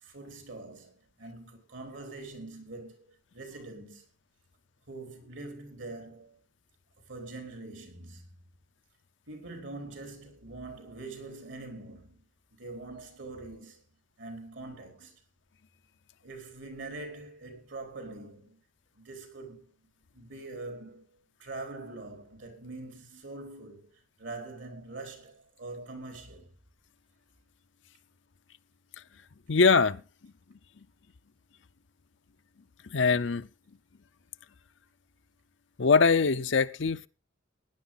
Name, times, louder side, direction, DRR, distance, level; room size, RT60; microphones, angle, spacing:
voice 1, 0.0-4.0 4.9-6.4 7.1-8.5 9.3-12.2 12.5-13.8 14.2-15.2 16.2-18.6 18.9-19.7 20.1-23.9 24.2-26.5, right 2 dB, 75° right, 4.5 m, -44 dB
voice 2, 29.5-30.3 32.9-33.5 35.8-37.1, left 4 dB, 70° left, 0.7 m, -23 dB
17.0 x 10.5 x 4.0 m
head